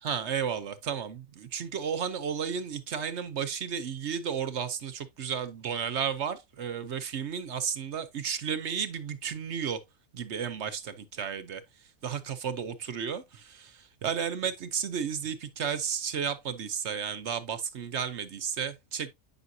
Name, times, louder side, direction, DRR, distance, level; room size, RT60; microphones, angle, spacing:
voice 1, 0.0-9.8 10.1-11.6 12.0-19.1, right 7 dB, 55° right, 0.9 m, -33 dB
8.6 x 6.1 x 2.6 m
omnidirectional pair, 1.6 m